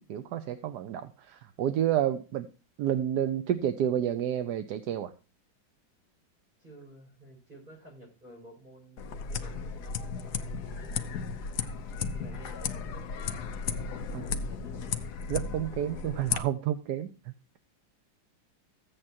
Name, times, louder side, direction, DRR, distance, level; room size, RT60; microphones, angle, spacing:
voice 1, 0.0-2.5 2.8-5.1 14.1-14.2 15.3-17.6, right 10 dB, 65° right, 9 dB, 1.1 m, -30 dB
voice 2, 6.6-10.9 12.1-13.4 14.1-15.0, right 1 dB, 25° right, -2 dB, 5.8 m, -52 dB
sound 1, 9.0-16.4, left 6 dB, 65° left, 1.2 m, -35 dB
14.5 x 8.6 x 2.8 m, 0.33 s
omnidirectional pair, 2.1 m